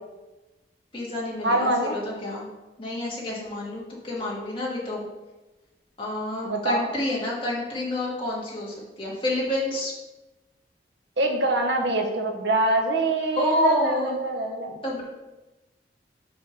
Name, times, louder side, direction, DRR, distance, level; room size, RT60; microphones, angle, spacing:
voice 1, 0.9-2.5 2.8-5.0 6.0-9.9 13.4-14.2 14.8-15.0, left 1 dB, 30° left, -5 dB, 2.0 m, -28 dB
voice 2, 1.4-1.9 6.4-6.8 11.2-14.8, right 2 dB, 80° right, 3 dB, 1.0 m, -24 dB
6.8 x 3.7 x 5.8 m, 1.1 s
head